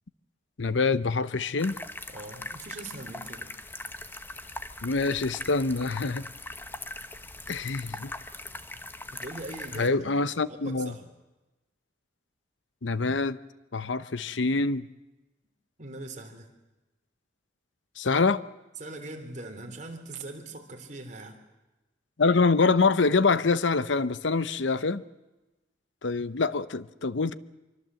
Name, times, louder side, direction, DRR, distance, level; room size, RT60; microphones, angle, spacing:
voice 1, 0.6-1.7 4.8-6.3 7.5-8.1 9.8-10.9 12.8-13.4 13.7-14.9 18.0-18.4 22.2-25.0 26.0-27.3, left 4 dB, 70° left, 16 dB, 0.8 m, -25 dB
sound 1, 1.6-9.9, left 2 dB, 10° left, 1.1 m, -41 dB
voice 2, 2.1-3.5 9.1-10.1 10.5-11.0 15.8-16.5 18.8-21.4, right 2 dB, 40° right, 4 dB, 3.7 m, -41 dB
26.0 x 24.5 x 7.7 m, 1.1 s
head